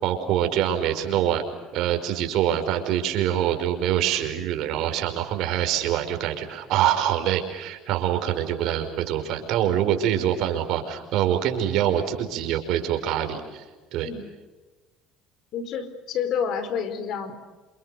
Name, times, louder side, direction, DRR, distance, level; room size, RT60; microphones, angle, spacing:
voice 1, 0.0-1.4 1.7-13.6 13.9-14.1, right 11 dB, 65° right, 6 dB, 5.1 m, -25 dB
voice 2, 15.5-17.3, left 7 dB, 60° left, 11 dB, 4.5 m, -29 dB
29.5 x 28.0 x 6.8 m, 1.2 s
supercardioid pair, 105°, 0 cm